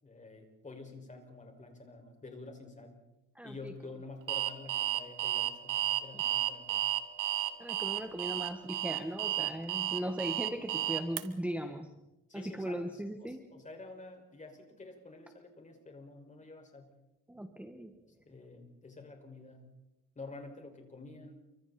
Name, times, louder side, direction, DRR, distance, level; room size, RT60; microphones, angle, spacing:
voice 1, 0.0-3.0 3.4-6.8 12.3-16.9 18.3-19.6 20.2-21.4, left 3 dB, 25° left, 3 dB, 5.8 m, -49 dB
voice 2, 3.3-3.7 7.6-11.9 12.3-13.4 17.3-17.9, right 1 dB, 5° right, 6 dB, 1.5 m, -38 dB
Alarm, 4.3-11.2, right 14 dB, 85° right, 1.6 m, -32 dB
29.0 x 25.0 x 4.4 m, 0.93 s
cardioid pair, 110°, 31 cm